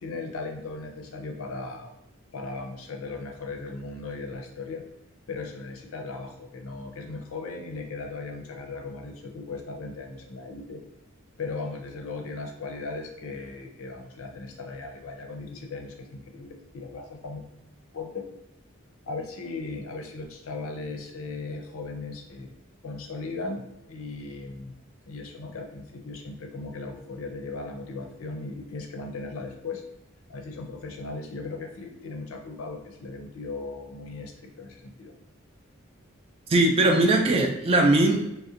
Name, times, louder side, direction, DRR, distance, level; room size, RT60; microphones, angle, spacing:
voice 1, 0.0-2.0 2.3-4.8 5.3-10.8 11.4-17.4 17.9-18.3 19.1-22.5 22.8-24.7 25.1-29.8 30.3-35.1, left 3 dB, 75° left, 2 dB, 0.5 m, -37 dB
voice 2, 36.5-38.3, right 2 dB, 30° right, 2 dB, 0.3 m, -20 dB
2.7 x 2.1 x 2.4 m, 0.89 s
head